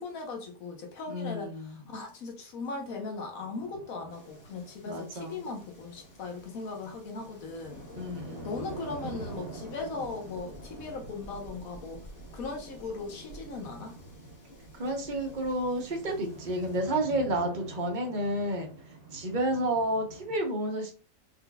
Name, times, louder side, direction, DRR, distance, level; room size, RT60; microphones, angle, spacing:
voice 1, 0.0-7.8 8.4-12.1 12.3-14.0, left 3 dB, 80° left, 1.5 m, -38 dB
voice 2, 1.1-1.8 4.8-5.4 8.0-8.6 14.7-18.7 19.1-20.9, right 1 dB, 40° right, 0.9 m, -31 dB
sound 1, 3.4-20.4, right 2 dB, 55° right, 1.3 m, -47 dB
sound 2, 4.1-16.8, equal, 55° left, 1.6 m, -50 dB
4.4 x 3.8 x 2.3 m
omnidirectional pair, 1.5 m